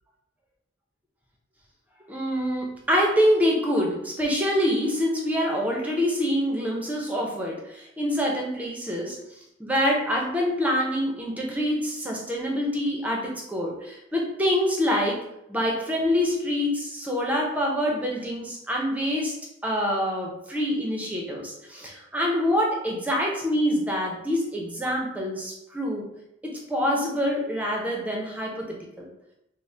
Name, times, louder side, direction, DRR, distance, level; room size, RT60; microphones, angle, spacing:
voice 1, 2.1-15.2 15.5-26.1 26.4-29.1, equal, 5° right, -1 dB, 0.5 m, -26 dB
4.1 x 2.1 x 3.2 m, 0.85 s
head